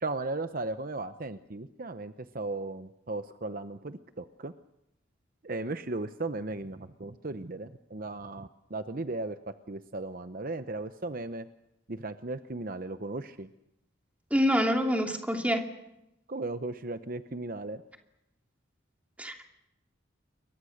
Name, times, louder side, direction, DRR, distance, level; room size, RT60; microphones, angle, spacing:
voice 1, 0.0-4.5 5.4-9.4 9.7-11.5 11.9-13.5 16.3-17.8, right 2 dB, 45° right, 10 dB, 0.8 m, -36 dB
voice 2, 14.3-15.6 19.2-19.5, equal, 5° right, 3 dB, 2.7 m, -26 dB
29.0 x 23.5 x 6.6 m, 0.87 s
head